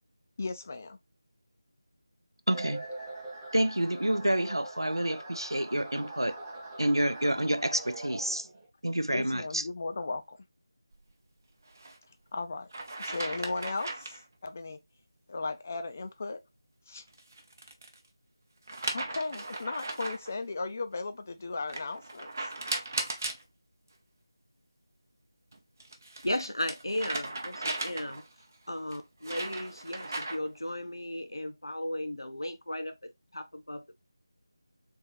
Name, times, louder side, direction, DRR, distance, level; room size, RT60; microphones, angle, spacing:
voice 1, 0.4-1.0 9.1-10.4 12.3-12.7 13.0-14.8 15.3-16.4 16.9-17.0 18.9-22.5, left 3 dB, 30° left, 0.4 m, -36 dB
sound 1, 2.5-8.7, right 2 dB, 10° right, 0.8 m, -43 dB
voice 2, 2.5-2.9 3.5-6.4 6.8-8.5 8.8-9.6, right 1 dB, 90° right, 0.4 m, -28 dB
sound 2, 11.7-12.0 12.7-14.2 17.1-18.0 18.7-20.3 21.7-23.4 25.5-28.3 28.9-30.6, right 2 dB, 40° right, 0.6 m, -37 dB
voice 3, 26.2-28.2 28.7-34.0, left 1 dB, 80° left, 0.7 m, -35 dB
3.6 x 2.7 x 3.0 m
figure-of-eight pair, 165°, 2 cm